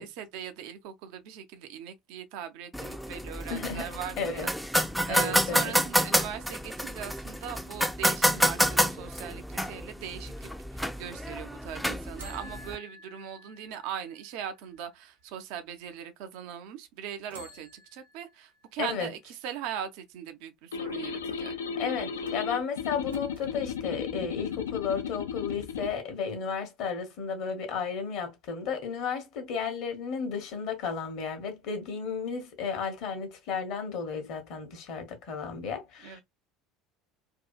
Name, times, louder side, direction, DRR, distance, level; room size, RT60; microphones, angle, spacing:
voice 1, 0.0-4.5 5.1-21.5 36.0-36.2, right 9 dB, 60° right, 0.4 m, -40 dB
sound 1, 2.7-12.8, equal, ahead, 0.4 m, -29 dB
voice 2, 3.5-4.5 5.1-5.7 18.8-19.1 21.8-36.2, left 6 dB, 55° left, 0.8 m, -33 dB
sound 2, 12.2-15.3 15.8-15.9 17.2-19.0 22.2-23.6 24.3-25.2 25.5-25.6, right 1 dB, 80° right, 0.8 m, -52 dB
sound 3, 20.7-25.9, left 6 dB, 75° left, 0.3 m, -35 dB
2.6 x 2.3 x 2.2 m
figure-of-eight pair, 65°, 0 cm